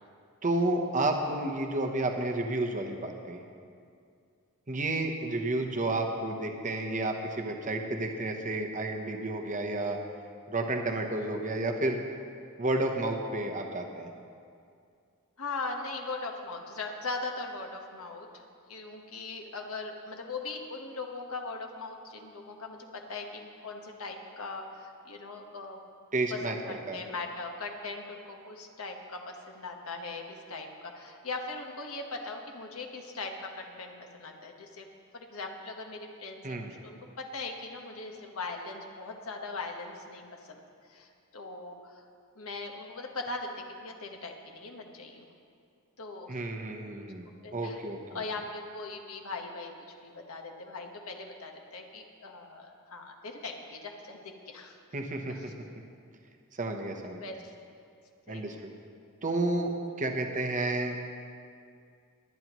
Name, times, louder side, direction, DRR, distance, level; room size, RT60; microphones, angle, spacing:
voice 1, 0.4-3.4 4.7-10.0 10.5-12.0 12.6-14.1 26.1-27.0 36.4-36.7 46.3-47.3 47.5-48.0 54.9-55.3 56.6-57.2 58.3-58.7 59.2-59.7 60.0-61.0, right 2 dB, 35° right, 3 dB, 0.9 m, -31 dB
voice 2, 15.4-18.4 18.7-25.8 26.3-34.9 35.1-36.6 36.8-40.2 40.5-40.6 40.9-42.0 42.3-43.5 43.8-45.3 46.0-46.4 47.4-47.8 48.1-49.7 50.0-54.8 55.3-55.4 57.0-57.3 58.3-58.6, left 3 dB, 70° left, 2 dB, 1.3 m, -40 dB
21.5 x 9.4 x 3.1 m, 2.3 s
head